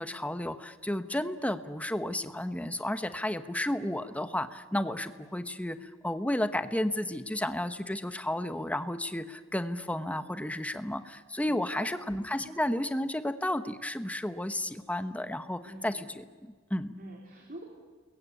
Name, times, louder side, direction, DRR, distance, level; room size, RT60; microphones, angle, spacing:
voice 1, 0.0-16.2 16.7-16.9, left 1 dB, 5° left, 10 dB, 1.1 m, -32 dB
voice 2, 11.4-11.9 15.6-16.1 17.0-17.6, right 1 dB, 50° right, 0 dB, 3.9 m, -46 dB
29.5 x 22.0 x 8.6 m, 1.5 s
head